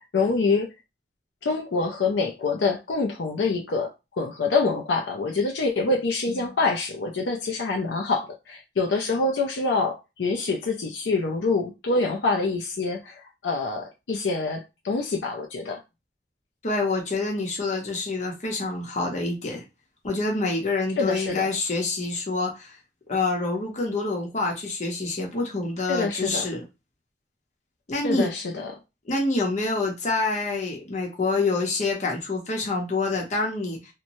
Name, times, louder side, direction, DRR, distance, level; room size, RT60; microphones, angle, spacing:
voice 1, 0.1-0.7 1.4-15.8 21.0-21.5 25.9-26.5 28.0-28.7, left 3 dB, 75° left, 0.5 m, -26 dB
voice 2, 16.6-19.6 20.0-22.8 23.1-26.6 27.9-28.3 29.1-33.8, left 3 dB, 40° left, 0.8 m, -27 dB
3.0 x 2.1 x 2.6 m
head